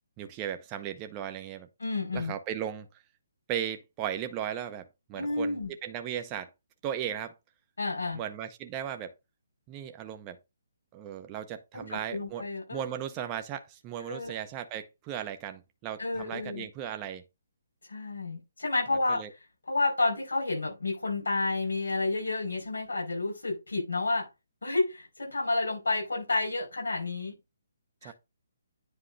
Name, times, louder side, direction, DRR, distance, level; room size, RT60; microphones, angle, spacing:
voice 1, 0.2-1.7 2.1-2.9 3.5-6.5 6.8-7.3 8.1-9.1 9.7-10.4 10.9-12.4 12.7-17.2 19.1-19.3 28.0-28.1, right 10 dB, 25° right, 0.8 m, -36 dB
voice 2, 1.8-2.3 5.1-5.7 7.8-8.2 11.7-13.0 14.1-14.3 16.0-16.7 17.9-19.2 19.7-24.3 24.6-27.3 28.0-28.1, left 3 dB, 85° left, 5.0 m, -30 dB
9.9 x 4.6 x 2.7 m
hypercardioid pair, 145°, 0 cm